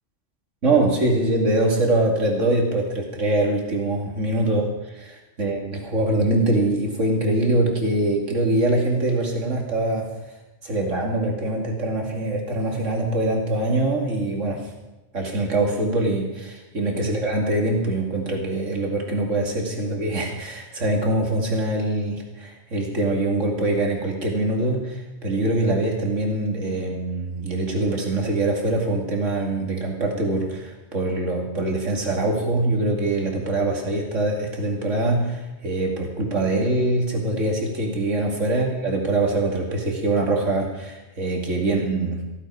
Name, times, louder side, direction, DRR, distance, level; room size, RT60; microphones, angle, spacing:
voice 1, 0.6-5.0 5.4-10.1 10.6-14.7 15.1-42.2, right 2 dB, 85° right, 0 dB, 2.9 m, -23 dB
15.5 x 14.5 x 4.9 m, 1.0 s
omnidirectional pair, 1.2 m